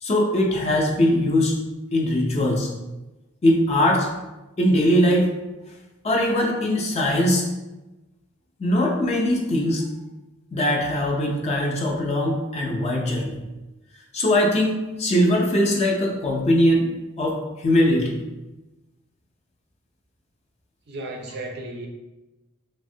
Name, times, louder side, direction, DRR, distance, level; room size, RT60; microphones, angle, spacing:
voice 1, 0.0-1.6 1.9-2.7 3.4-4.1 4.6-5.3 6.0-7.4 8.6-9.8 10.5-13.4 14.1-16.9 17.2-18.2, left 1 dB, 30° left, 0 dB, 0.4 m, -21 dB
voice 2, 20.9-21.9, right 2 dB, 50° right, 2 dB, 0.4 m, -34 dB
3.4 x 2.0 x 2.6 m, 1.1 s
head